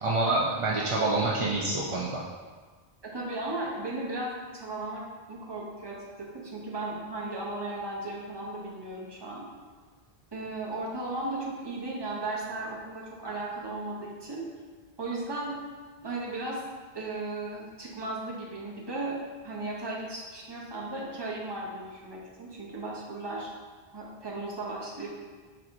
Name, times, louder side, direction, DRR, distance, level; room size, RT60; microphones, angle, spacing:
voice 1, 0.0-2.2, right 2 dB, 55° right, -4 dB, 0.3 m, -27 dB
voice 2, 3.0-5.0 5.3-9.5 10.3-14.4 15.0-15.6 16.0-16.6 16.9-19.2 19.4-23.5 23.9-25.1, right 2 dB, 25° right, -4 dB, 0.7 m, -36 dB
4.3 x 4.2 x 2.5 m, 1.4 s
omnidirectional pair, 1.1 m